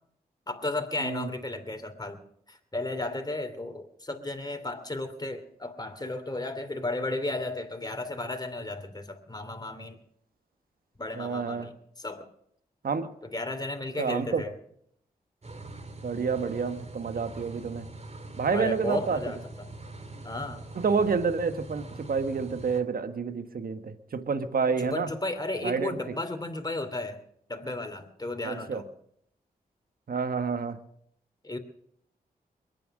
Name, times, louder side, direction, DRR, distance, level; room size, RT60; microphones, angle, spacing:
voice 1, 0.5-2.2 2.5-10.0 11.0-12.3 13.2-14.5 18.5-19.7 20.2-20.6 24.6-27.2 27.5-28.9 31.4-31.6, left 2 dB, 25° left, 6 dB, 2.8 m, -34 dB
voice 2, 1.0-1.3 11.1-11.7 12.8-13.1 14.0-14.4 16.0-17.9 18.4-19.2 20.7-25.1 25.6-26.0 28.4-28.8 30.1-30.8, right 5 dB, 60° right, 10 dB, 1.4 m, -29 dB
sound 1, 15.4-22.8, right 2 dB, 40° right, 2.2 m, -43 dB
22.0 x 9.2 x 6.5 m, 0.71 s
supercardioid pair, 40°, 17 cm